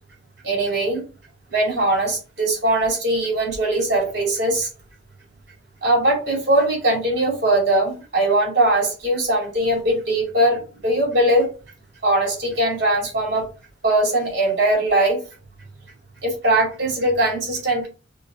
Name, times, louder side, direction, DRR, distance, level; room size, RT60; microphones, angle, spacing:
voice 1, 0.4-1.0 1.5-4.7 5.8-11.5 12.0-13.4 13.8-15.2 16.2-17.9, right 1 dB, 60° right, -2 dB, 2.7 m, -20 dB
5.4 x 2.5 x 3.6 m, 0.33 s
head